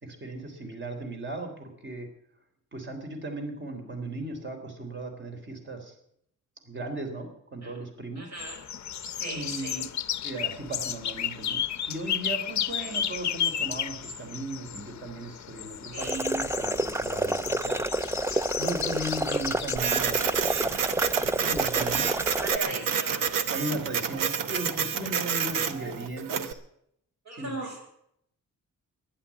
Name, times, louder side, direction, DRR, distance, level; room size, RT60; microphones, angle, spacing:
voice 1, 0.0-2.1 2.7-5.9 6.6-8.3 9.3-9.9 10.2-17.8 18.6-20.4 21.4-22.1 23.5-26.6 27.3-27.9, right 1 dB, 35° right, 4 dB, 3.5 m, -37 dB
voice 2, 8.2-8.6 9.2-9.8 12.8-13.0 15.9-16.4 22.4-23.3 27.3-27.9, right 2 dB, 55° right, 1 dB, 5.9 m, -38 dB
sound 1, 8.4-19.8, left 9 dB, 60° left, 0.7 m, -33 dB
sound 2, 16.0-22.6, right 2 dB, 10° right, 0.5 m, -29 dB
Printer, 19.8-26.5, right 7 dB, 80° right, 1.1 m, -29 dB
11.5 x 11.0 x 8.5 m, 0.73 s
cardioid pair, 100°, 32 cm